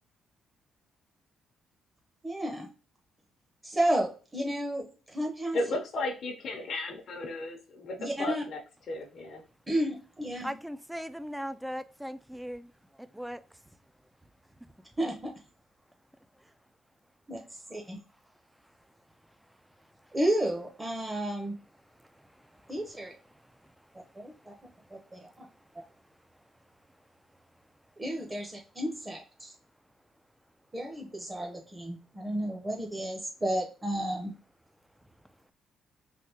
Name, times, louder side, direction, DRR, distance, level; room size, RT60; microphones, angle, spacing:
voice 1, 2.2-2.7 3.6-5.6 8.0-8.4 9.7-10.5 15.0-15.3 17.3-17.4 17.7-18.0 20.1-21.5 22.7-23.1 24.2-24.5 24.9-25.5 28.0-29.5 30.7-34.3, right 1 dB, 20° right, 0.8 m, -32 dB
voice 2, 5.5-8.6 8.9-9.4, left 2 dB, 60° left, 0.7 m, -34 dB
voice 3, 10.4-12.7 13.0-13.4 16.4-16.5 20.0-20.1 22.0-22.7 23.3-24.1 24.4-24.5, equal, 5° right, 0.3 m, -40 dB
3.4 x 2.8 x 2.8 m
cardioid pair, 90°, 0 cm